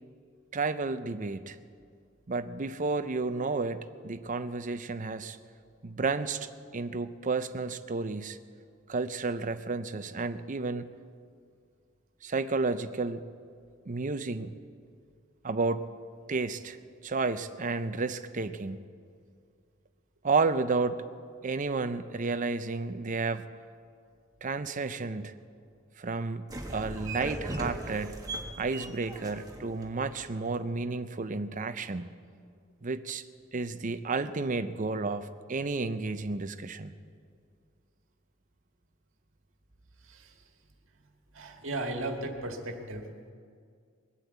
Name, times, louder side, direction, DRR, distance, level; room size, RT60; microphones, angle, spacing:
voice 1, 0.5-1.6 2.3-5.4 5.8-8.4 8.9-10.9 12.2-13.2 13.9-14.5 15.4-15.9 16.3-16.8 17.0-18.8 20.2-21.0 21.4-23.5 24.4-25.4 26.0-26.5 26.7-28.3 28.6-32.1 32.8-33.2 33.5-36.9, right 3 dB, 40° right, 11 dB, 0.6 m, -31 dB
sound 1, 26.5-30.5, right 1 dB, 20° right, 1.4 m, -39 dB
voice 2, 41.4-43.1, right 2 dB, 70° right, 3 dB, 1.8 m, -35 dB
21.0 x 8.4 x 8.1 m, 2.2 s
head